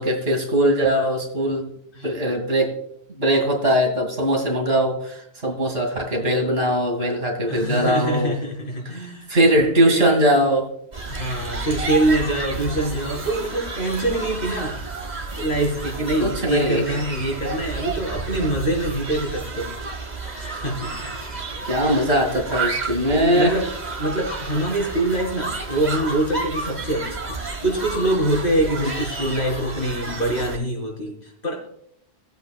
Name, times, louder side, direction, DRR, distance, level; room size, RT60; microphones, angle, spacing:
voice 1, 0.0-1.7 2.0-2.7 3.2-8.4 8.9-10.7 16.2-16.8 21.6-23.5 28.7-28.9, right 1 dB, 70° right, 1 dB, 2.4 m, -21 dB
voice 2, 7.5-9.4 9.9-10.3 11.0-14.8 15.4-19.7 20.5-21.1 21.9-22.1 23.1-23.7 24.0-31.7, right 1 dB, 55° left, -3 dB, 4.2 m, -24 dB
sound 1, 10.9-30.6, right 3 dB, 45° right, 1.6 m, -31 dB
18.5 x 8.0 x 2.4 m, 0.69 s
omnidirectional pair, 1.1 m